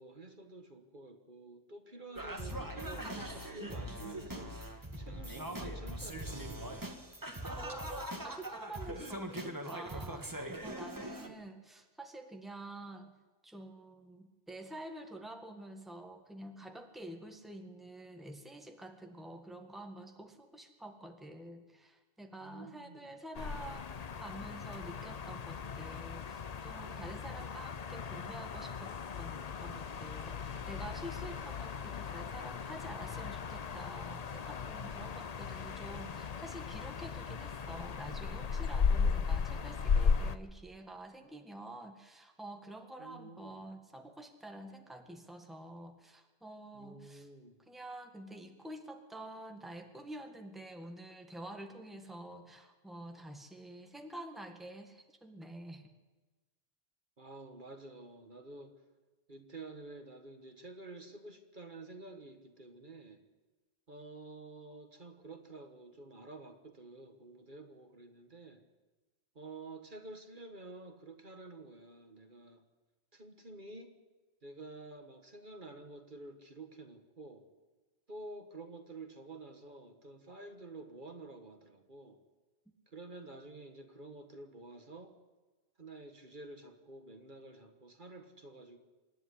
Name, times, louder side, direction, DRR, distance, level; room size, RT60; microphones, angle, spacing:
voice 1, 0.0-4.6 5.0-6.8 11.2-11.5 22.4-23.1 43.0-43.7 46.7-47.6 57.2-58.7 59.3-63.2 63.9-68.6 69.3-72.6 73.1-73.9 74.4-77.4 78.1-82.2 82.9-85.1 85.8-88.8, right 2 dB, 50° right, 6 dB, 1.8 m, -50 dB
Singing, 2.2-11.3, right 1 dB, 20° right, 1.8 m, -41 dB
voice 2, 7.6-13.2 13.4-47.3 47.7-55.9, right 1 dB, ahead, 4 dB, 1.8 m, -48 dB
sound 1, 23.3-40.4, left 6 dB, 45° left, 0.7 m, -36 dB
26.0 x 11.0 x 9.9 m, 1.2 s
omnidirectional pair, 1.1 m